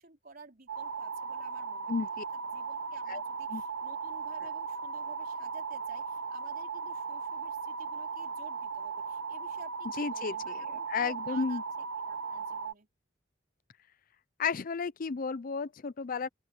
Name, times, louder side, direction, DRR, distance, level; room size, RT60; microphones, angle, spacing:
voice 1, 0.0-11.6 12.0-12.9, right 3 dB, 50° right, 4.7 m, -53 dB
sound 1, 0.7-12.7, right 5 dB, 80° right, 1.1 m, -37 dB
voice 2, 1.9-2.2 3.1-3.2 3.5-3.6 10.0-10.3 10.9-11.6 14.4-16.3, left 5 dB, 45° left, 0.5 m, -32 dB
open air
head